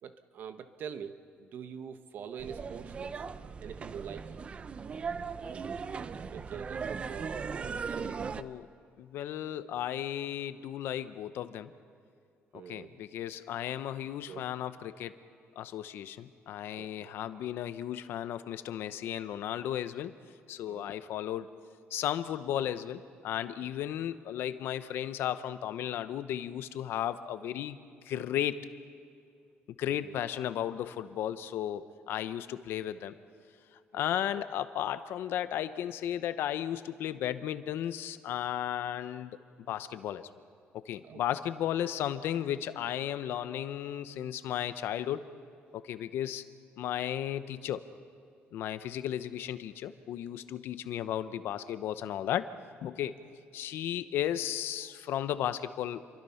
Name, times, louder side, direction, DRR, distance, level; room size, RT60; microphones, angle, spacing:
voice 1, 0.0-3.2 3.6-4.3 6.1-8.2 12.5-13.0 14.3-14.4 16.7-17.1 20.7-20.9 29.8-30.2 34.1-34.5 41.0-41.2, right 7 dB, 55° right, 9 dB, 1.2 m, -44 dB
sound 1, 2.4-8.4, right 5 dB, 30° right, 0.6 m, -38 dB
voice 2, 8.4-8.7 9.0-11.7 12.5-15.2 15.6-20.1 20.5-21.5 21.9-27.8 28.0-28.7 29.8-33.1 33.9-39.4 39.7-40.3 40.7-45.3 45.7-46.5 46.8-47.8 48.5-52.5 52.8-53.2 53.5-56.0, left 11 dB, 70° left, 12 dB, 0.9 m, -34 dB
28.0 x 23.5 x 5.8 m, 2.4 s
cardioid pair, 155°, 4 cm